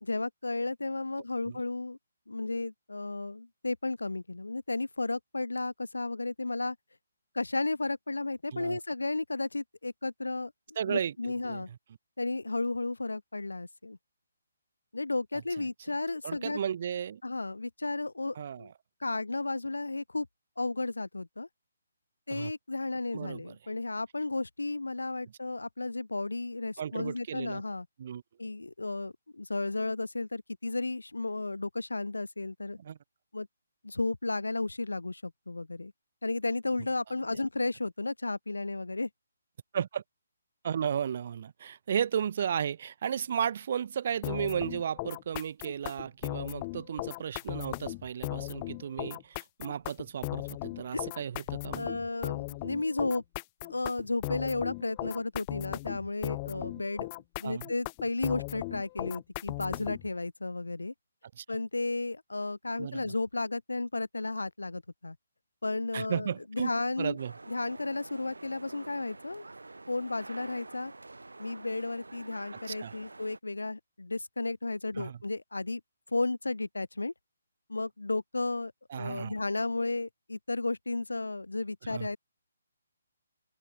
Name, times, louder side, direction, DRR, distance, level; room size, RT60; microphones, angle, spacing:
voice 1, 0.0-2.0 2.3-6.8 7.3-10.5 10.9-11.7 12.2-14.0 14.9-16.6 17.2-18.7 19.0-20.3 20.6-21.5 22.3-27.9 28.4-32.8 33.3-33.5 33.8-35.9 36.2-39.1 50.9-51.0 51.7-53.2 53.6-57.1 57.4-60.9 61.5-65.2 65.6-67.2 67.5-69.5 69.9-70.9 71.4-75.8 76.1-77.1 77.7-82.2, left 2 dB, 90° left, 0.4 m, -33 dB
voice 2, 10.8-11.6 15.6-15.7 16.2-17.2 18.4-18.7 22.3-22.5 23.1-23.5 26.8-27.6 28.0-28.2 32.8-33.0 39.7-40.0 40.6-51.9 57.4-57.7 61.4-61.5 62.8-63.1 65.9-66.7 67.0-67.3 72.7-72.9 75.0-75.2 78.9-79.3 81.9-82.1, right 8 dB, 50° right, 0.7 m, -34 dB
sound 1, 44.2-60.1, left 24 dB, 25° left, 0.4 m, -37 dB
sound 2, 67.2-73.4, right 2 dB, 85° right, 5.8 m, -48 dB
open air
figure-of-eight pair, 145°, 0 cm